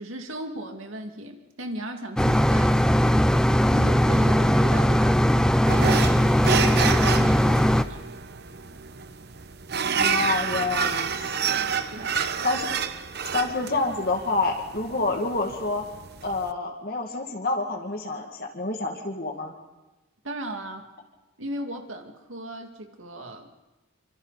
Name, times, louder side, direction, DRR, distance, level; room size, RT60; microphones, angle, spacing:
voice 1, 0.0-2.8 3.7-5.2 5.7-6.5 7.1-8.0 11.9-12.2 20.2-20.9 21.4-23.5, right 1 dB, 90° right, 4 dB, 2.2 m, -37 dB
sound 1, 2.2-7.8, equal, 5° left, 0.6 m, -19 dB
sound 2, 5.7-16.5, right 6 dB, 55° right, 0.9 m, -29 dB
voice 2, 9.9-11.7 12.4-12.7 13.3-15.8 16.2-19.5, left 3 dB, 50° left, 2 dB, 2.2 m, -28 dB
26.5 x 25.5 x 4.1 m, 1.1 s
head